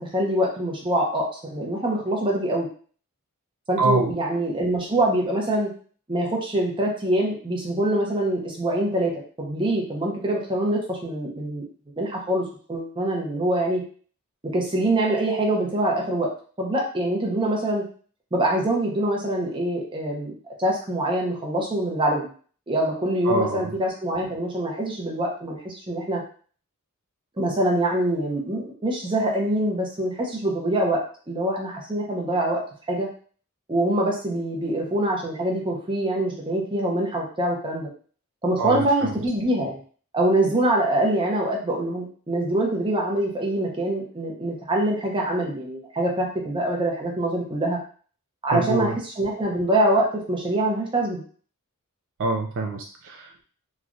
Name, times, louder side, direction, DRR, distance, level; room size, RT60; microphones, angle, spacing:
voice 1, 0.0-2.7 3.7-5.7 6.1-11.6 12.0-13.8 14.4-16.3 16.6-17.8 18.3-20.3 20.6-22.3 22.7-26.2 27.4-32.6 32.9-33.1 33.7-37.9 38.4-39.8 40.1-47.8 48.4-51.2, right 1 dB, 20° right, -2 dB, 0.7 m, -24 dB
voice 2, 3.8-4.1 23.2-23.7 38.6-39.1 48.5-49.0 52.2-53.4, right 2 dB, 60° right, 3 dB, 0.4 m, -25 dB
3.1 x 2.4 x 2.5 m, 0.43 s
head